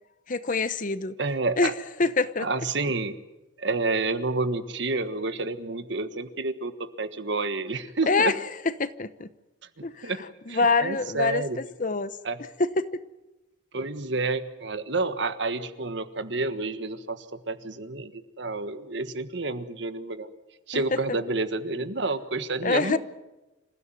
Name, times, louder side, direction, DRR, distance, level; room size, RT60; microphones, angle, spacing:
voice 1, 0.3-1.2 1.6-1.7 2.0-2.5 8.1-8.4 8.6-9.3 9.8-10.1 10.5-11.4 11.8-12.1 12.6-13.0 20.7-21.0 22.6-23.0, left 3 dB, 45° left, 14 dB, 0.9 m, -25 dB
voice 2, 1.2-1.7 2.4-3.1 3.6-8.3 9.8-10.2 10.5-11.6 12.2-12.4 13.7-18.1 18.4-20.3 20.7-23.0, right 3 dB, 65° right, 11 dB, 1.5 m, -29 dB
26.5 x 15.5 x 9.2 m, 1.0 s
head